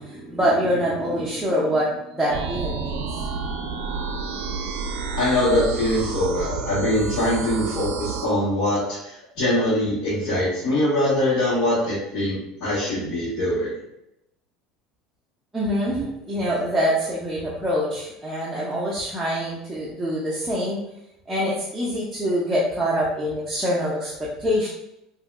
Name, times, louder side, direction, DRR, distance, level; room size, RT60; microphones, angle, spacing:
voice 1, 0.0-3.1 15.5-20.8 21.3-24.7, equal, 10° right, -7 dB, 0.6 m, -25 dB
sound 1, 2.3-8.3, right 5 dB, 80° right, 0.4 m, -30 dB
voice 2, 5.2-13.7, left 1 dB, 55° left, -11 dB, 1.4 m, -23 dB
3.6 x 2.7 x 2.2 m, 0.84 s
supercardioid pair, 120°, 0 cm